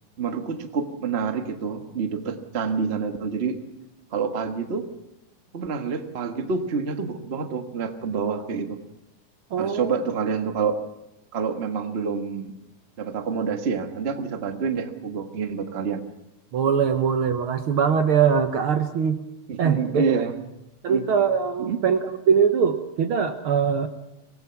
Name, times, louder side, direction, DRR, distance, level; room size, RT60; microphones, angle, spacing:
voice 1, 0.2-3.6 4.1-4.9 5.5-8.8 9.6-10.8 11.3-12.5 13.0-16.0 19.5-20.3 20.9-21.0 21.6-21.8, right 5 dB, 45° right, 6 dB, 0.8 m, -27 dB
voice 2, 9.5-9.9 16.5-19.2 19.6-20.0 20.8-23.9, right 7 dB, 65° right, 7 dB, 1.3 m, -22 dB
25.0 x 18.0 x 5.9 m, 0.89 s
omnidirectional pair, 3.8 m